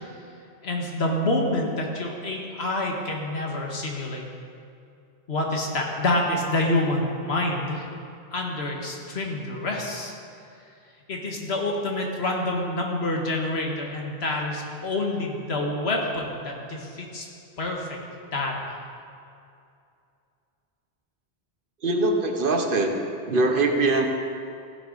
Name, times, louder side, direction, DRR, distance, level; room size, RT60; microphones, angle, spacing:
voice 1, 0.6-4.3 5.3-7.9 8.3-10.1 11.1-17.3 17.6-18.0 18.3-18.8, left 2 dB, 75° left, 0 dB, 1.8 m, -27 dB
voice 2, 21.8-23.0 23.3-24.1, right 2 dB, 55° right, 4 dB, 1.1 m, -22 dB
15.5 x 9.8 x 4.0 m, 2.5 s
omnidirectional pair, 1.1 m